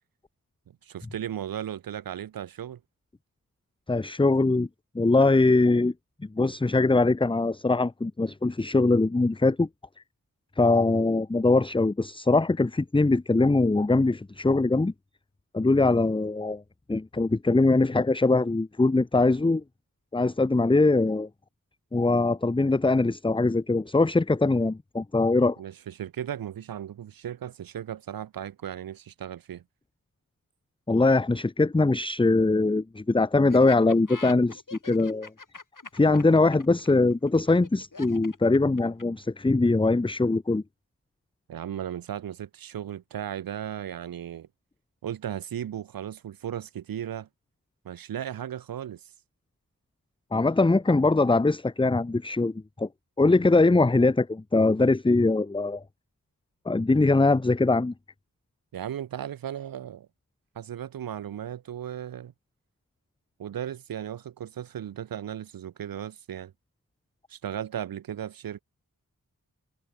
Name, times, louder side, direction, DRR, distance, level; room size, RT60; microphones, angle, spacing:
voice 1, 0.8-2.8 25.6-29.6 41.5-44.5 45.0-47.3 47.8-49.1 58.7-60.1 60.6-62.3 63.4-66.5 67.3-68.6, right 10 dB, 75° right, 0.6 m, -36 dB
voice 2, 3.9-4.7 4.9-5.9 6.3-9.7 10.6-14.9 15.5-16.6 16.9-19.6 20.1-21.3 21.9-25.6 30.9-35.3 35.9-40.6 50.3-52.9 53.2-55.8 56.7-57.9, left 3 dB, 15° left, 0.6 m, -22 dB
Laughter, 33.5-39.2, left 4 dB, 60° left, 6.4 m, -43 dB
cardioid pair, 40°, 35 cm